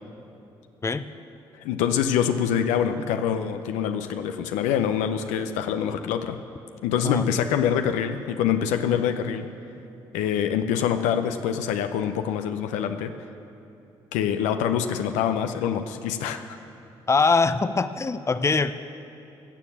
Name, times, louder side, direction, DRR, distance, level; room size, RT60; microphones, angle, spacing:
voice 1, 1.6-6.4 6.8-9.5 10.1-13.1 14.1-16.4, left 8 dB, 80° left, 8 dB, 0.6 m, -25 dB
voice 2, 17.1-18.7, left 4 dB, 25° left, 12 dB, 0.6 m, -22 dB
16.0 x 7.1 x 7.3 m, 2.8 s
hypercardioid pair, 45°, 12 cm